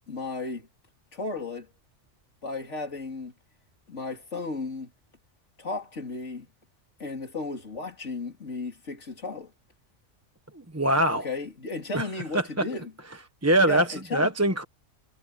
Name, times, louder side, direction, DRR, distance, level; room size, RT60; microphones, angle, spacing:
voice 1, 0.1-0.7 1.1-1.7 2.4-3.3 3.9-4.9 5.6-6.5 7.0-9.5 11.1-12.9 13.7-14.3, left 3 dB, 70° left, 3.7 m, -34 dB
voice 2, 10.5-11.3 11.9-12.0 12.3-12.6 13.4-13.9 14.1-14.6, right 1 dB, 15° right, 1.0 m, -23 dB
omnidirectional pair, 1.3 m